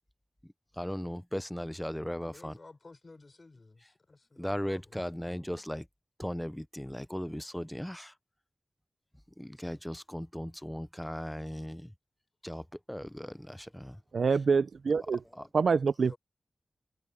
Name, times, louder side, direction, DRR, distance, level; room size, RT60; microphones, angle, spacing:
voice 1, 0.8-2.5 4.4-5.9 6.2-8.1 9.4-11.9 12.4-14.0 15.4-15.5, equal, 5° left, 0.5 m, -37 dB
voice 2, 2.2-5.0 16.1-16.2, left 3 dB, 45° left, 4.4 m, -54 dB
voice 3, 14.1-15.2 15.5-16.1, right 5 dB, 85° right, 0.5 m, -26 dB
wide cardioid pair, 85°, 0 cm